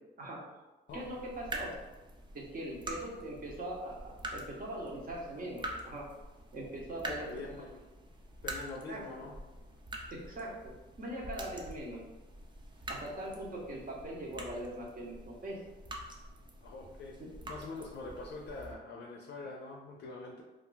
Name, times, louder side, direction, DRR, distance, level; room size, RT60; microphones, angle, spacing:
sound 1, 0.9-18.7, right 1 dB, 25° right, 0.5 m, -46 dB
voice 1, 0.9-1.8 2.3-6.1 6.5-7.3 8.9-9.3 10.1-12.0 12.9-15.6 17.2-17.3, right 1 dB, 45° right, -2 dB, 0.8 m, -41 dB
voice 2, 7.1-7.8 8.4-9.4 16.6-17.2 17.5-20.4, left 3 dB, 60° left, 0 dB, 0.4 m, -44 dB
2.4 x 2.2 x 3.8 m, 1.1 s
cardioid pair, 90°, 20 cm